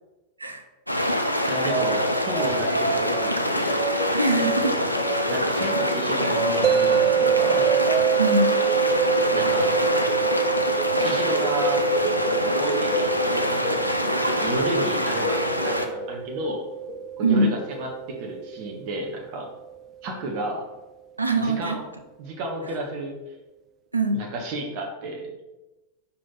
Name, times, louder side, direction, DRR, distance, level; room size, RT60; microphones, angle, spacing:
sound 1, 0.9-15.9, left 1 dB, 90° left, 0.5 m, -25 dB
sound 2, 1.5-16.3 16.9-17.5 17.7-17.9 18.9-19.1, left 1 dB, 50° left, 1.5 m, -30 dB
voice 1, 1.5-3.8 5.3-7.6 9.3-9.7 11.0-11.8 12.2-16.6 17.2-19.5 20.0-20.6 21.4-21.9 22.2-23.1 24.1-25.3, right 1 dB, 45° right, 1 dB, 1.3 m, -32 dB
voice 2, 4.1-4.8 8.2-8.5 17.2-17.5 21.2-21.7 23.9-24.2, right 2 dB, 80° right, 6 dB, 0.7 m, -22 dB
sound 3, 6.6-19.7, right 10 dB, 30° right, 0.3 m, -27 dB
5.0 x 4.3 x 5.7 m, 1.1 s
figure-of-eight pair, 90°, 0 cm